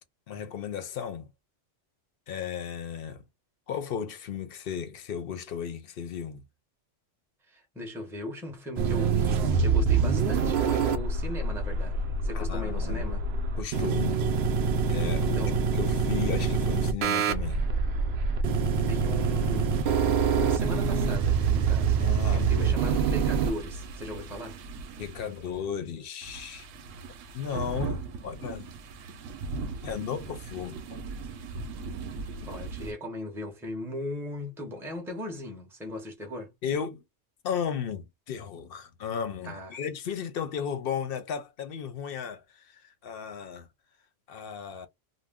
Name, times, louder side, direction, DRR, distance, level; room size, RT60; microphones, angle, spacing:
voice 1, 0.3-1.3 2.3-3.2 3.7-6.4 12.3-13.1 13.5-14.2 14.9-15.4 15.7-17.7 21.9-22.8 25.0-26.7 27.3-28.7 29.8-31.0 36.6-37.0 37.4-43.7 44.3-44.9, left 7 dB, 55° left, 0.8 m, -35 dB
voice 2, 7.5-13.2 15.1-15.6 18.9-19.8 20.3-24.6 32.4-36.5 39.4-39.7, left 1 dB, ahead, 0.7 m, -38 dB
sound 1, 8.8-23.5, right 5 dB, 65° right, 0.7 m, -25 dB
sound 2, 19.7-25.7 26.2-32.9, right 3 dB, 90° right, 1.0 m, -39 dB
2.5 x 2.1 x 3.4 m
omnidirectional pair, 1.3 m